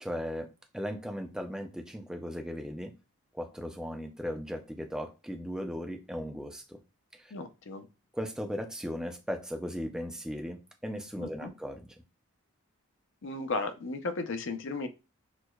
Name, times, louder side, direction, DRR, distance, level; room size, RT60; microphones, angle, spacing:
voice 1, 0.0-2.9 3.3-6.8 7.1-7.3 8.1-11.8, equal, 5° right, 0.3 m, -37 dB
voice 2, 7.3-7.9 11.2-11.5 13.2-14.9, left 3 dB, 55° left, 0.5 m, -35 dB
6.1 x 2.1 x 2.2 m
head